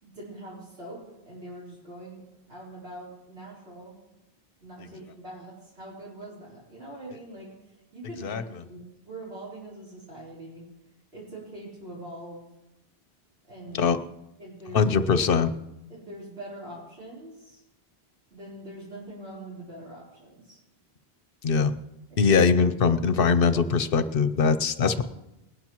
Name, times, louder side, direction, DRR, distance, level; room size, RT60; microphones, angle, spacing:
voice 1, 0.0-4.0 4.6-7.5 7.9-10.7 11.1-12.4 13.5-13.9 14.4-14.9 15.9-17.6 18.3-20.6 22.1-22.5, right 1 dB, 75° right, -7 dB, 4.3 m, -43 dB
voice 2, 14.7-15.5 21.4-21.7 22.2-25.0, left 5 dB, 60° left, 11 dB, 0.9 m, -22 dB
21.0 x 12.0 x 3.0 m, 0.89 s
omnidirectional pair, 1.1 m